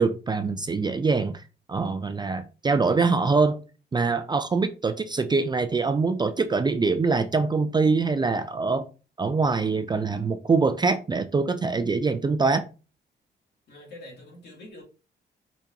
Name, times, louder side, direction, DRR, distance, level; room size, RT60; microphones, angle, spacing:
voice 1, 0.0-1.4 1.7-3.6 3.9-8.9 9.2-12.7, right 4 dB, 25° right, 0.4 m, -24 dB
voice 2, 13.7-14.8, left 1 dB, 65° left, 2.6 m, -45 dB
5.1 x 3.5 x 2.8 m
cardioid pair, 100°, 19 cm